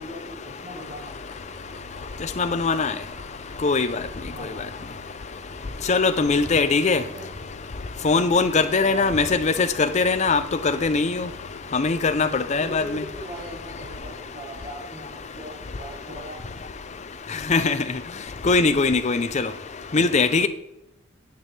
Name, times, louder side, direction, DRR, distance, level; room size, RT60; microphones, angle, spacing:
voice 1, 0.0-1.3 4.3-4.8 6.3-7.3 8.6-9.3 12.4-16.4, equal, 30° right, 1.4 m, -40 dB
sound 1, 0.7-14.0, left 2 dB, 55° left, 0.9 m, -46 dB
voice 2, 2.4-2.9 3.6-3.9 5.9-7.0 8.0-9.7 9.9-11.3 11.7-12.8 17.5-17.8 18.4-19.5 19.9-20.5, left 4 dB, 35° left, 0.5 m, -21 dB
9.1 x 8.6 x 3.3 m
head